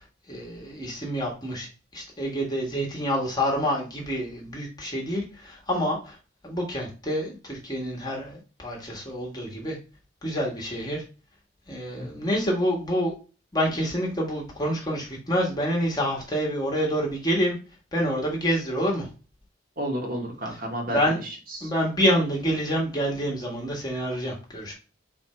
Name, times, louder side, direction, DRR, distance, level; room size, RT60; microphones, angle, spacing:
voice 1, 0.3-1.7 1.9-6.1 6.4-9.8 10.2-11.0 11.7-13.1 13.5-17.5 17.9-19.1 20.9-21.2 21.6-24.7, equal, 20° left, -2 dB, 1.4 m, -27 dB
voice 2, 19.8-21.7, right 1 dB, 45° right, 1 dB, 1.1 m, -32 dB
4.3 x 2.6 x 4.2 m, 0.33 s
head